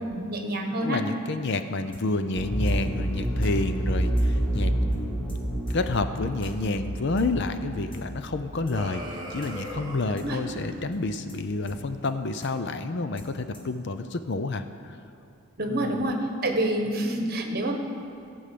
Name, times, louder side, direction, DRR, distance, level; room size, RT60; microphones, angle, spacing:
voice 1, 0.0-1.0 10.2-10.4 15.6-17.7, right 1 dB, 45° right, 3 dB, 1.2 m, -27 dB
voice 2, 0.8-5.4 5.7-9.0 9.3-15.0 15.7-16.1, left 3 dB, 50° left, 9 dB, 0.5 m, -29 dB
sound 1, 1.9-2.1 2.7-2.8 3.4-3.5 4.2-4.3 4.5-4.7 4.9-5.0 5.3-5.4 5.7-5.8 6.4-6.5 7.2-7.3 7.9-8.1 8.7-8.8 9.1-9.2 9.4-9.6 9.8-9.9 10.2-10.3 10.5-10.7 10.9-11.0 11.3-11.4 11.7-12.1 12.4-12.5 13.2-13.8, left 1 dB, 25° left, 1.5 m, -45 dB
sound 2, 2.3-10.1 10.4-10.5, right 1 dB, 5° left, 1.1 m, -29 dB
sound 3, 8.7-10.8, right 1 dB, 20° right, 1.3 m, -39 dB
15.0 x 5.5 x 8.4 m, 2.6 s
head